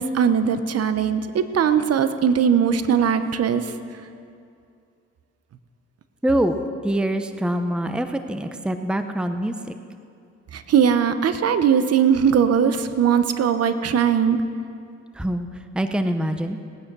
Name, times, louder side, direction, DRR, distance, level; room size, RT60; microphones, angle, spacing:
voice 1, 0.0-3.7 10.5-14.4, right 7 dB, 55° right, 11 dB, 0.9 m, -20 dB
voice 2, 6.2-6.6 6.8-9.8 15.1-15.5 15.7-16.6, right 1 dB, 5° right, 8 dB, 0.7 m, -24 dB
18.0 x 9.4 x 6.1 m, 2.5 s
cardioid pair, 90°, 30 cm